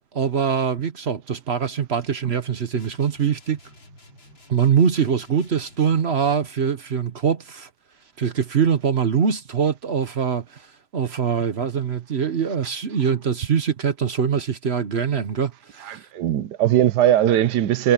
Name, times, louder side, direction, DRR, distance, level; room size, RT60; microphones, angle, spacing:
voice 1, 0.1-3.6 4.5-7.7 8.2-10.7 10.9-16.0, right 7 dB, 45° right, 1.0 m, -23 dB
sound 1, 2.8-6.2, left 1 dB, 80° left, 6.2 m, -50 dB
voice 2, 15.8-17.9, right 11 dB, 65° right, 1.3 m, -19 dB
omnidirectional pair, 2.1 m